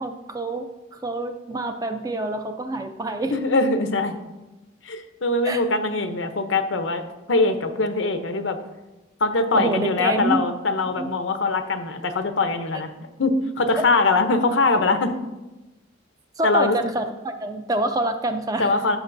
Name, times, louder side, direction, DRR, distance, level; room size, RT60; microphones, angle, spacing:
voice 1, 0.0-3.4 5.4-5.8 9.5-10.4 11.0-11.1 13.8-13.9 16.4-18.7, right 2 dB, 20° right, 6 dB, 0.5 m, -27 dB
voice 2, 3.3-4.2 4.8-7.0 7.3-8.6 9.2-12.9 13.2-15.2 16.4-16.8 18.6-19.0, left 3 dB, 80° left, 7 dB, 0.8 m, -22 dB
14.0 x 6.4 x 2.6 m, 1.0 s
head